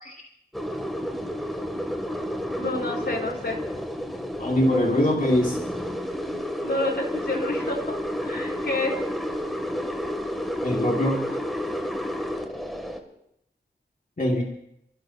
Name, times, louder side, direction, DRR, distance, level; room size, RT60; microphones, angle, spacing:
sound 1, 0.5-13.0, equal, ahead, 2.5 m, -30 dB
voice 1, 2.6-3.6 6.6-8.0 8.2-9.0, left 2 dB, 60° left, 0 dB, 4.3 m, -29 dB
voice 2, 4.4-5.6 6.3-6.4 10.6-11.4 14.2-14.4, left 1 dB, 45° left, -2 dB, 2.4 m, -23 dB
30.0 x 16.5 x 2.9 m, 0.78 s
wide cardioid pair, 70°, 20 cm